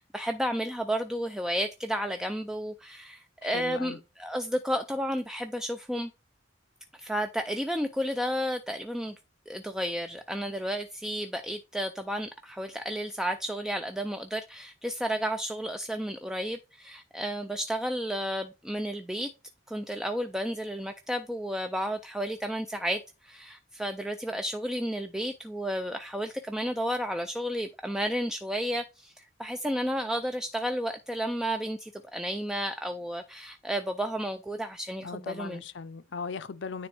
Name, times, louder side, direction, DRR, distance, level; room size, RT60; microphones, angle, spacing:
voice 1, 0.0-6.1 6.9-9.2 9.5-19.3 19.7-35.6, equal, 5° right, 0.3 m, -32 dB
voice 2, 3.4-4.0 35.0-36.9, left 5 dB, 65° left, 0.5 m, -38 dB
9.6 x 3.4 x 3.3 m
head